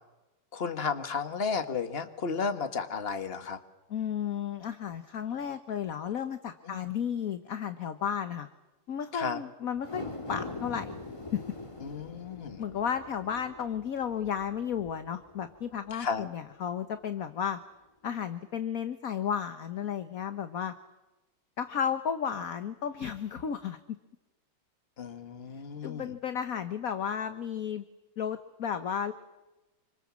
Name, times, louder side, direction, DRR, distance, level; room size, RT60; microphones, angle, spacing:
voice 1, 0.5-3.6 6.6-6.8 9.1-9.4 11.8-12.6 15.9-16.2 25.0-26.1, left 5 dB, 30° left, 9 dB, 1.6 m, -33 dB
voice 2, 3.9-8.5 8.9-10.0 10.3-10.9 11.3-11.4 12.6-17.6 18.0-20.7 21.6-23.8 25.8-27.8 28.2-29.1, left 8 dB, 50° left, 10 dB, 1.3 m, -33 dB
sound 1, 9.8-16.3 16.7-16.8, left 2 dB, 15° left, 1.9 m, -43 dB
27.0 x 25.5 x 7.5 m, 1.1 s
omnidirectional pair, 2.2 m